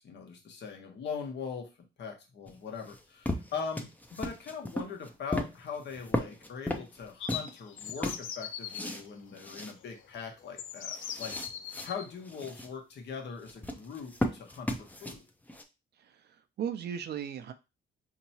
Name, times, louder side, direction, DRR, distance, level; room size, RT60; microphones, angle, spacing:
voice 1, 0.0-1.7 2.0-11.3 11.8-15.2, left 6 dB, 60° left, 3 dB, 1.1 m, -41 dB
sound 1, 2.5-7.5 7.8-9.1 9.4-9.7 10.1-10.2 10.6-11.9 12.2-12.7 13.4-15.6, left 1 dB, 10° left, 0.6 m, -36 dB
sound 2, 7.2-8.8 9.9-10.0 10.6-12.1, left 9 dB, 80° left, 0.5 m, -40 dB
voice 2, 15.9-17.5, right 8 dB, 55° right, 9 dB, 0.5 m, -37 dB
4.4 x 2.9 x 2.8 m, 0.26 s
cardioid pair, 90°, 20 cm